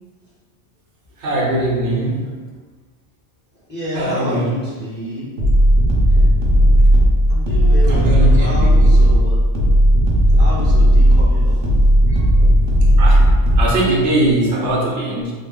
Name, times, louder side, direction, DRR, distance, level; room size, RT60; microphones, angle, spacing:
voice 1, 1.2-2.3 3.9-4.5 7.9-8.9 12.1-12.7 13.0-13.2 13.6-15.3, right 1 dB, 80° right, -3 dB, 1.1 m, -20 dB
voice 2, 3.7-5.3 7.3-9.4 10.4-11.6, left 1 dB, 10° left, -10 dB, 1.0 m, -28 dB
sound 1, 5.4-13.7, equal, 60° right, 0.9 m, -13 dB
3.5 x 2.0 x 3.6 m, 1.4 s
omnidirectional pair, 1.2 m